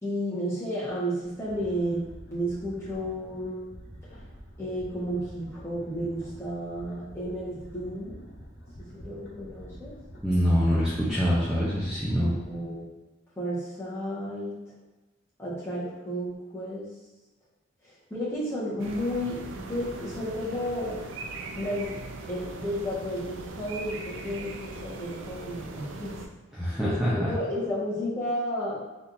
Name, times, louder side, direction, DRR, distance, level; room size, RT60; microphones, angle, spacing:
voice 1, 0.0-2.0 2.3-3.7 4.6-8.2 8.8-9.9 12.2-12.8 13.4-14.6 15.4-16.9 18.1-21.0 21.5-22.0 22.3-26.1 26.8-28.8, equal, 15° left, -10 dB, 1.4 m, -32 dB
sound 1, 1.3-12.8, equal, 80° left, 1.1 m, -47 dB
voice 2, 10.2-12.3 26.5-27.3, equal, 5° right, -10 dB, 0.6 m, -25 dB
sound 2, 18.8-26.3, right 3 dB, 80° right, 0.4 m, -40 dB
4.2 x 3.6 x 2.7 m, 1.1 s
head